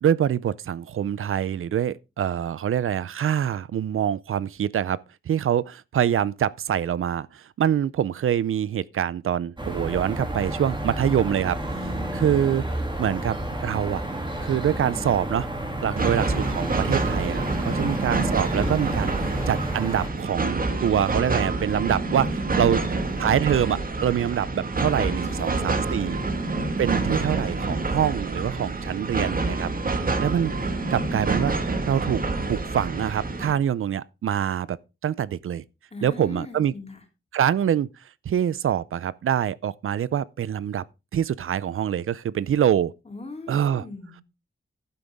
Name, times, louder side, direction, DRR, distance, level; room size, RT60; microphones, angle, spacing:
voice 1, 0.0-5.0 5.3-14.0 14.4-15.5 15.8-22.8 23.2-26.2 26.8-29.7 30.2-30.5 30.9-31.5 31.9-32.2 32.5-34.8 35.0-35.6 36.0-36.7 37.3-37.9 38.3-40.8 41.1-42.9 43.5-43.8, right 9 dB, 80° right, 0.5 m, -25 dB
sound 1, 9.6-20.1, right 1 dB, 20° right, 2.7 m, -30 dB
sound 2, 16.0-33.5, right 3 dB, 45° right, 1.7 m, -27 dB
voice 2, 22.5-23.5 25.2-26.5 35.9-37.0 43.0-44.2, left 2 dB, 30° left, 3.0 m, -41 dB
11.5 x 9.2 x 3.5 m
wide cardioid pair, 145°, 21 cm